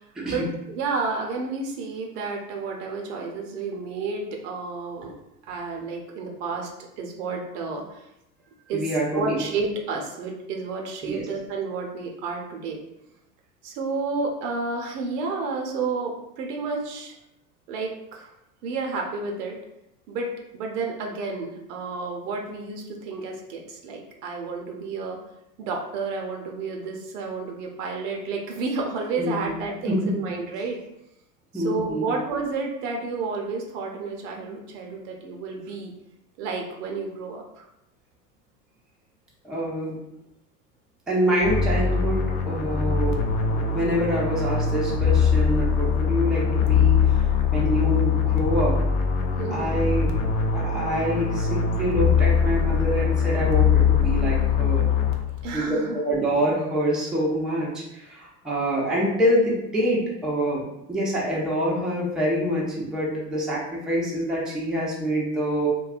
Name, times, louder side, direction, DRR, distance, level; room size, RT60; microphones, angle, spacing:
voice 1, 0.3-5.1 5.5-6.7 7.0-8.0 8.7-8.8 9.1-12.8 13.6-17.1 17.7-18.3 18.6-19.6 20.1-25.2 25.6-30.8 31.5-35.9 36.4-37.7 49.4-49.8 55.4-56.0, right 4 dB, 70° right, 1 dB, 0.7 m, -31 dB
voice 2, 8.7-9.4 11.0-11.2 29.2-29.5 29.9-30.1 31.5-32.1 39.4-40.0 41.1-47.2 47.5-48.8 49.5-50.1 50.5-54.9 55.5-65.7, equal, ahead, -6 dB, 0.5 m, -26 dB
sound 1, 41.4-55.5, left 6 dB, 55° left, 0.6 m, -22 dB
2.6 x 2.2 x 2.4 m, 0.85 s
hypercardioid pair, 85°, 48 cm